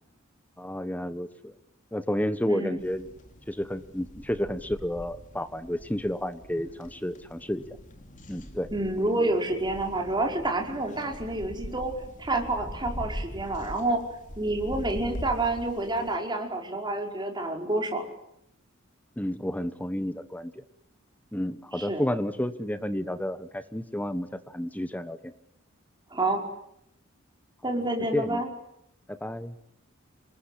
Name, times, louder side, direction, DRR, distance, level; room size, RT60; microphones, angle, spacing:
voice 1, 0.6-1.5 1.9-3.1 3.5-7.6 8.3-8.7 19.2-20.5 21.3-25.3 28.1-28.4 29.1-29.5, equal, 10° left, 12 dB, 1.2 m, -31 dB
voice 2, 2.5-2.8 8.7-11.9 12.2-14.0 14.4-18.0 21.7-22.1 26.1-26.4 27.6-28.5, right 2 dB, 20° right, 2 dB, 5.1 m, -28 dB
sound 1, 2.8-16.2, equal, 40° left, 3.4 m, -42 dB
27.0 x 21.5 x 10.0 m, 0.78 s
head